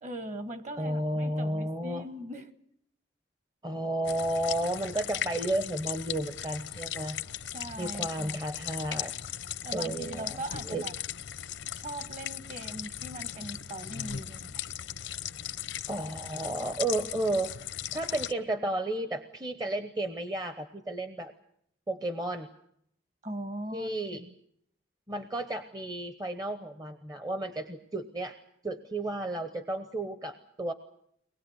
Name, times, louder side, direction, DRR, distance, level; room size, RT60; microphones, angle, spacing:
voice 1, 0.0-2.5 7.5-8.4 9.6-10.9 11.8-14.6 23.2-23.9, right 1 dB, 40° right, 1.5 m, -40 dB
voice 2, 0.8-2.1 3.6-7.2 7.8-9.1 9.7-10.4 10.6-10.9 15.9-21.3 21.9-22.5 23.7-24.2 25.1-28.4 28.6-30.7, right 1 dB, 20° right, 0.9 m, -32 dB
sound 1, 4.0-18.3, left 10 dB, 80° left, 0.8 m, -38 dB
23.5 x 20.0 x 8.0 m
head